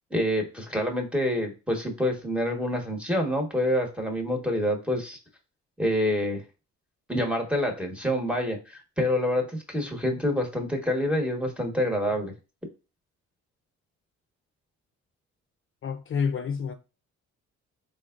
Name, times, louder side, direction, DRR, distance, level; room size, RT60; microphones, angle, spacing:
voice 1, 0.1-5.2 5.8-6.4 7.1-12.3, left 1 dB, 5° right, 1.3 m, -27 dB
voice 2, 15.8-16.7, left 6 dB, 45° left, 0.5 m, -28 dB
3.8 x 3.5 x 2.4 m
cardioid pair, 90°, 30 cm